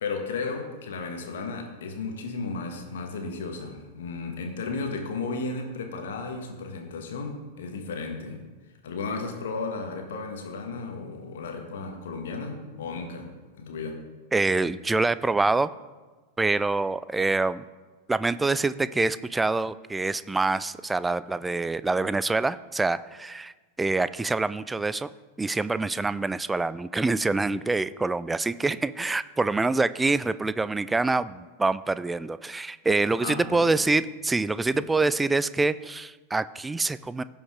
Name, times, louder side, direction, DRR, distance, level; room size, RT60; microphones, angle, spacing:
voice 1, 0.0-8.4 8.8-13.3 13.6-14.0 33.2-33.8 34.7-34.8, left 4 dB, 60° left, 3 dB, 1.6 m, -34 dB
voice 2, 14.3-15.7 16.4-17.6 18.1-23.5 23.8-25.1 25.4-37.2, right 3 dB, 10° right, 16 dB, 0.3 m, -26 dB
16.5 x 5.5 x 3.7 m, 1.3 s
figure-of-eight pair, 90°, 0 cm